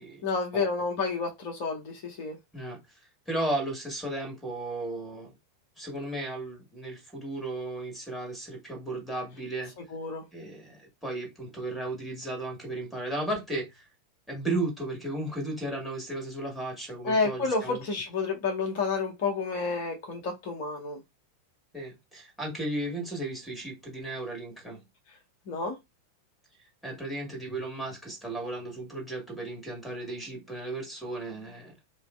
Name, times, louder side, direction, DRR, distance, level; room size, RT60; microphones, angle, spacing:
voice 1, 0.2-2.4 9.9-10.2 17.0-21.0 25.5-25.8, left 4 dB, 50° left, 0.6 m, -30 dB
voice 2, 3.3-5.3 5.8-9.7 10.3-13.9 14.3-17.8 21.7-24.8 26.8-31.9, right 2 dB, ahead, 1.4 m, -35 dB
3.1 x 2.5 x 2.3 m
figure-of-eight pair, 90°, 0 cm